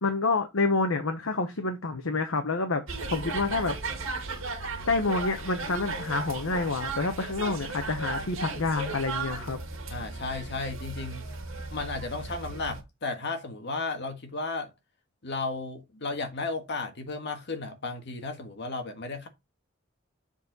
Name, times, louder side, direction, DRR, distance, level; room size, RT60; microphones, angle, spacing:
voice 1, 0.0-2.8 3.1-3.8 4.9-9.6, left 3 dB, 85° left, 1.0 m, -28 dB
sound 1, 2.9-12.8, right 3 dB, 75° right, 2.0 m, -36 dB
voice 2, 9.9-11.3 11.7-14.7 15.2-19.3, left 3 dB, 60° left, 1.6 m, -34 dB
7.4 x 4.2 x 4.0 m
head